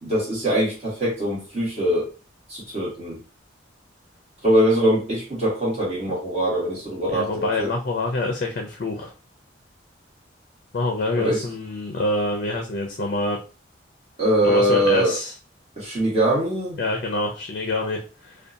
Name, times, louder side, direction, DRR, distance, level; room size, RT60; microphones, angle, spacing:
voice 1, 0.0-2.1 2.5-3.2 4.4-7.7 11.2-11.4 14.2-15.1 15.8-16.8, right 1 dB, 35° right, -6 dB, 1.3 m, -22 dB
voice 2, 7.1-9.1 10.7-13.4 14.4-15.3 16.8-18.3, left 2 dB, 50° left, 2 dB, 0.4 m, -26 dB
2.7 x 2.2 x 2.5 m, 0.34 s
head